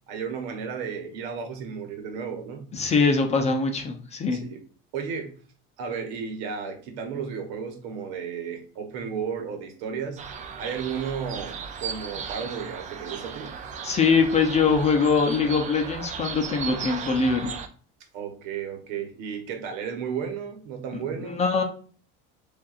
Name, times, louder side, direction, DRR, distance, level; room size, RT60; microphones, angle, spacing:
voice 1, 0.1-2.7 4.3-4.6 4.9-5.4 5.8-10.2 10.6-13.5 18.1-21.4, right 6 dB, 80° right, 5 dB, 1.2 m, -33 dB
voice 2, 2.7-4.4 13.8-17.5 21.3-21.6, left 4 dB, 20° left, 4 dB, 0.5 m, -22 dB
sound 1, 10.2-17.7, right 6 dB, 25° right, 0.3 m, -36 dB
7.2 x 2.6 x 2.4 m, 0.43 s
cardioid pair, 155°, 31 cm